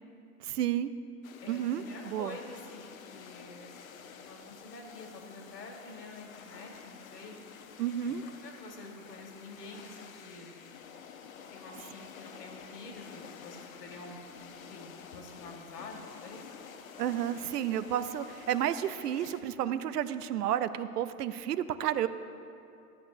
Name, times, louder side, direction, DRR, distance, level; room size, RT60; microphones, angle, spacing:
voice 1, 0.4-0.9 1.5-2.4 7.8-8.2 17.0-22.1, right 10 dB, 80° right, 13 dB, 0.6 m, -31 dB
sound 1, 1.2-19.4, left 7 dB, 60° left, 0.8 m, -50 dB
voice 2, 1.4-7.3 8.1-8.2 8.4-10.6 11.3-16.5, left 3 dB, 85° left, 2 dB, 2.0 m, -48 dB
14.5 x 8.7 x 2.6 m, 2.7 s
hypercardioid pair, 165°, 47 cm